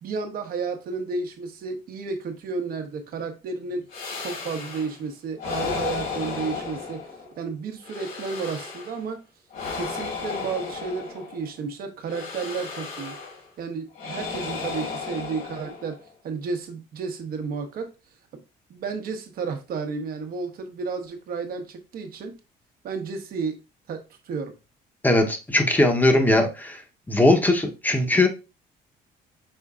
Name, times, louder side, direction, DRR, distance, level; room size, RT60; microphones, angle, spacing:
voice 1, 0.0-3.8 4.2-7.0 7.4-9.2 9.7-13.2 13.6-16.0 16.2-17.9 18.7-22.3 22.8-23.6 23.9-24.5, right 4 dB, 60° right, 1.0 m, -32 dB
sound 1, 3.9-5.0 5.4-7.4 7.8-9.0 9.5-11.5 12.1-13.5 13.9-16.1, left 5 dB, 65° left, 1.8 m, -34 dB
voice 2, 25.0-26.8 27.1-28.3, left 2 dB, 10° left, 0.8 m, -20 dB
5.4 x 3.7 x 2.4 m
cardioid pair, 110°, 17 cm